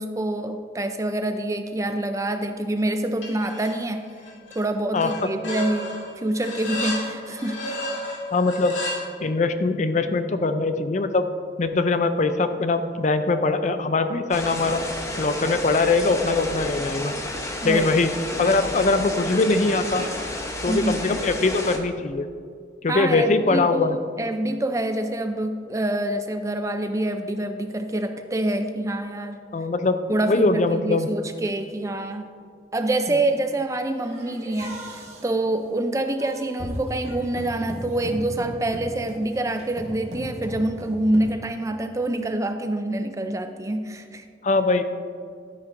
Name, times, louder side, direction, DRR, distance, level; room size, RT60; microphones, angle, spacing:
voice 1, 0.0-4.1 4.5-7.8 17.6-17.9 20.7-21.0 22.9-29.4 30.1-32.3 32.7-44.2, right 1 dB, 15° right, 7 dB, 0.4 m, -26 dB
sound 1, 3.2-3.8 4.1-4.6 5.0-9.0, left 1 dB, 85° left, 2.4 m, -32 dB
voice 2, 8.3-8.8 9.2-11.2 11.6-14.8 15.2-17.1 17.6-18.1 18.4-20.0 20.6-22.3 22.8-24.0 29.5-30.0 30.3-31.1 44.4-44.8, left 3 dB, 40° left, 9 dB, 0.4 m, -22 dB
sound 2, 14.3-21.8, left 1 dB, 15° left, 0.8 m, -31 dB
sound 3, 33.9-41.4, equal, 35° right, 1.5 m, -37 dB
12.5 x 10.0 x 2.6 m, 2.2 s
head